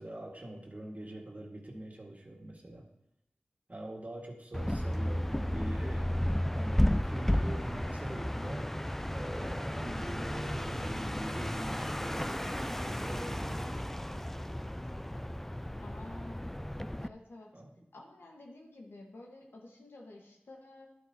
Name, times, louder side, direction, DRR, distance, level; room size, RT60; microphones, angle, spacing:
voice 1, 0.0-2.9 3.7-8.8 9.1-13.9 17.5-17.7, right 1 dB, 45° right, 0 dB, 1.9 m, -44 dB
sound 1, 4.5-17.1, left 1 dB, 10° left, 0.3 m, -33 dB
voice 2, 15.8-16.5 17.0-17.5 17.9-20.9, left 2 dB, 90° left, 0 dB, 1.4 m, -50 dB
11.0 x 9.3 x 2.9 m, 0.81 s
cardioid pair, 40°, 4 cm